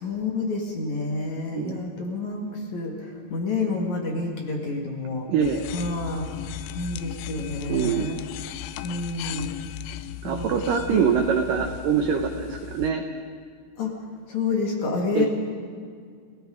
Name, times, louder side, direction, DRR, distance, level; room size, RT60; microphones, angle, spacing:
voice 1, 0.0-5.3 5.7-6.3 6.7-8.2 8.8-9.5 10.2-10.5 10.9-11.1 13.8-13.9 14.3-15.3, left 3 dB, 50° left, 0 dB, 2.8 m, -29 dB
voice 2, 5.3-5.7 7.7-8.2 10.2-13.0 15.1-15.3, right 7 dB, 80° right, 5 dB, 1.9 m, -24 dB
sound 1, 5.4-12.9, left 13 dB, 80° left, 2.7 m, -37 dB
29.5 x 17.5 x 5.1 m, 2.1 s
omnidirectional pair, 5.3 m